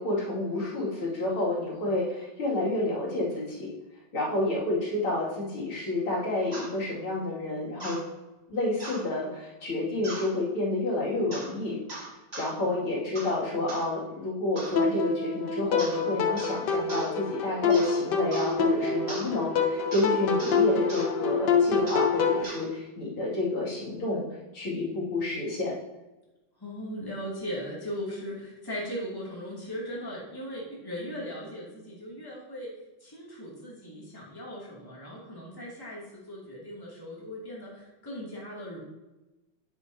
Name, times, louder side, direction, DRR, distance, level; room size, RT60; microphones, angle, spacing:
voice 1, 0.0-3.7 4.1-8.0 8.5-11.8 12.4-24.2 24.5-25.7, left 2 dB, 85° left, -6 dB, 3.4 m, -29 dB
sound 1, 6.5-6.7 7.8-8.0 8.8-9.0 10.0-10.3 11.3-11.5 11.9-12.5 13.2-13.4 13.7-13.9 14.6-14.8 15.8-16.0 16.4-16.6 16.9-17.1 17.7-18.0 18.3-18.5 19.1-19.3 19.9-20.1 20.4-20.6 20.9-21.1 21.9-22.1 22.4-22.6, right 2 dB, 30° right, 2.2 m, -39 dB
sound 2, 14.8-22.4, left 5 dB, 65° left, 1.4 m, -26 dB
voice 2, 26.6-32.7 33.0-38.8, equal, 10° left, -5 dB, 2.4 m, -38 dB
9.7 x 8.9 x 2.8 m, 1.0 s
omnidirectional pair, 2.3 m